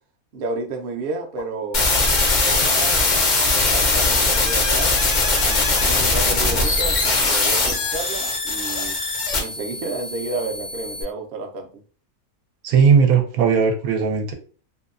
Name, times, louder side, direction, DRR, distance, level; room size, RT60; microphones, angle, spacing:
voice 1, 0.3-1.9 2.4-3.0 3.5-4.9 5.4-9.0 9.3-11.8, right 3 dB, 60° right, 3 dB, 0.7 m, -31 dB
sound 1, 1.4-1.5 1.9-2.0 2.9-4.0 5.2-6.2 7.4-7.8 8.2-8.4 8.7-9.0 9.3-9.4, left 4 dB, 75° left, 1.1 m, -38 dB
sound 2, 1.7-11.0, left 3 dB, 50° left, 0.5 m, -20 dB
voice 2, 12.6-14.3, right 6 dB, 90° right, 3 dB, 1.1 m, -17 dB
2.7 x 2.2 x 2.4 m, 0.40 s
omnidirectional pair, 1.4 m